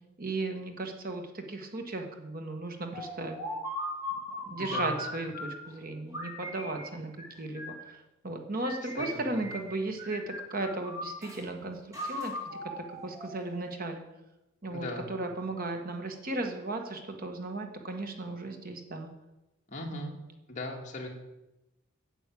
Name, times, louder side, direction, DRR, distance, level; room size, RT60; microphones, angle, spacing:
voice 1, 0.2-3.4 4.5-7.1 7.4-7.7 8.2-11.8 12.1-12.3 12.8-14.0 14.6-19.1 19.9-20.1, right 2 dB, 50° right, 4 dB, 1.6 m, -36 dB
sound 1, 2.9-5.7 6.1-7.9 8.6-9.7 10.0-11.4 11.9-13.7, left 1 dB, 15° right, 2.7 m, -38 dB
voice 2, 4.6-4.9 8.9-9.5 14.7-15.1 19.7-20.1 20.5-21.1, left 1 dB, 40° left, 0 dB, 2.3 m, -38 dB
9.4 x 7.8 x 8.4 m, 0.98 s
head